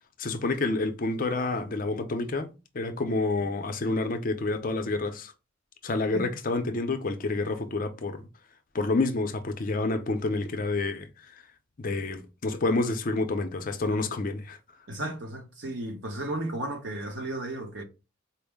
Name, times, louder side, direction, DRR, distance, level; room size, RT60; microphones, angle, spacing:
voice 1, 0.2-5.3 5.8-8.2 8.7-11.3 11.8-14.6, left 2 dB, 40° left, 0.5 m, -28 dB
voice 2, 14.9-17.8, right 1 dB, 60° right, 1.0 m, -34 dB
4.3 x 2.0 x 3.4 m
head